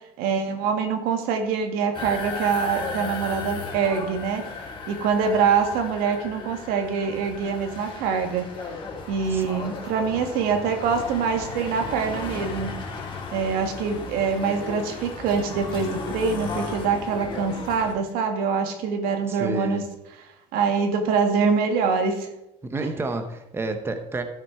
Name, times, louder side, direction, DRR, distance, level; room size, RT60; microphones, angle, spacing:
voice 1, 0.0-4.5 4.9-8.5 9.1-12.7 13.3-19.8 20.5-22.3 22.8-22.9, right 6 dB, 85° right, 6 dB, 1.6 m, -24 dB
sound 1, 1.9-17.9, left 4 dB, 35° left, 2.8 m, -35 dB
voice 2, 19.3-19.8 22.6-24.2, right 2 dB, 15° right, 7 dB, 0.9 m, -30 dB
12.5 x 5.9 x 4.8 m, 0.90 s
cardioid pair, 135°, 15 cm